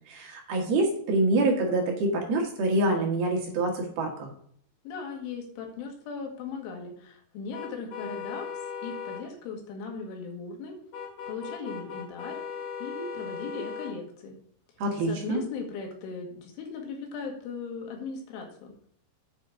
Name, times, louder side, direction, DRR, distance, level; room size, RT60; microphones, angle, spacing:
voice 1, 0.1-4.3 14.8-15.4, right 2 dB, 60° right, 0 dB, 3.4 m, -26 dB
voice 2, 4.8-10.8 11.3-12.4 12.8-14.4 15.0-18.7, left 4 dB, 85° left, 1 dB, 4.4 m, -38 dB
sound 1, 7.5-9.2 10.9-13.9, left 6 dB, 55° left, 2.6 m, -37 dB
9.3 x 6.0 x 4.7 m, 0.62 s
omnidirectional pair, 5.4 m